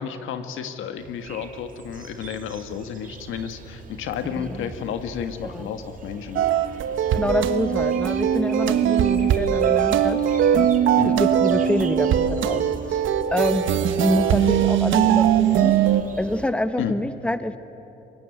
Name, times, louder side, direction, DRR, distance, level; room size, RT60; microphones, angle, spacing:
voice 1, 0.0-6.5 11.0-11.2 16.8-17.0, left 8 dB, 85° left, 8 dB, 1.6 m, -31 dB
sound 1, 1.0-16.5, right 4 dB, 45° right, 2.4 m, -41 dB
voice 2, 4.4-4.7 5.4-5.7 7.1-10.2 10.5-10.7 11.0-13.0 13.3-13.6 14.0-15.8 16.2-17.6, left 1 dB, 5° left, 11 dB, 1.2 m, -26 dB
sound 2, 6.4-16.0, right 9 dB, 80° right, 1.3 m, -20 dB
23.5 x 21.5 x 9.2 m, 2.9 s
cardioid pair, 90°, 20 cm